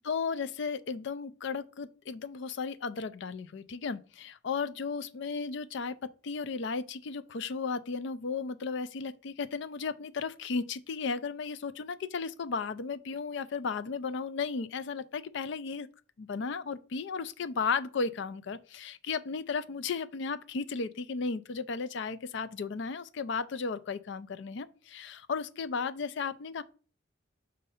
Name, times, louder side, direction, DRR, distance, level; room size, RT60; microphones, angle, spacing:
voice 1, 0.0-15.9 16.2-26.6, left 5 dB, 65° left, 0.4 m, -35 dB
6.4 x 2.7 x 5.5 m
head